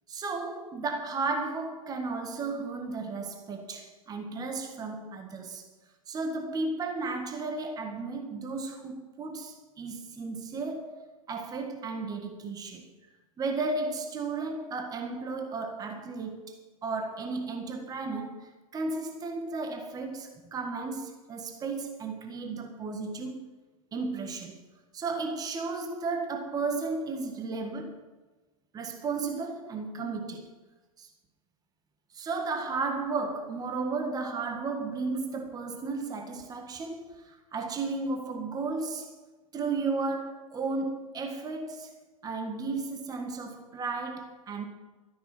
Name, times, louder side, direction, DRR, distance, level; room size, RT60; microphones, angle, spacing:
voice 1, 0.1-5.7 6.1-12.8 13.4-16.6 16.8-23.5 23.9-24.6 24.9-28.0 28.7-30.5 31.0-31.1 32.1-39.1 39.5-41.9 42.2-44.7, right 3 dB, 20° right, 1.7 m, -34 dB
13.0 x 10.0 x 6.2 m
hypercardioid pair, 120°, 18 cm